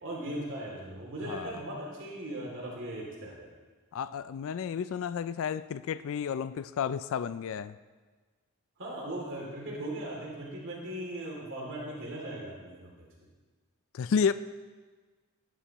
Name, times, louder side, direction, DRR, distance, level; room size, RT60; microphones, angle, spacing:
voice 1, 0.0-3.5 8.8-12.9, right 1 dB, 60° right, -3 dB, 2.7 m, -38 dB
voice 2, 3.9-7.8 13.9-14.3, left 7 dB, 65° left, 13 dB, 0.3 m, -31 dB
16.5 x 11.0 x 3.0 m, 1.4 s
head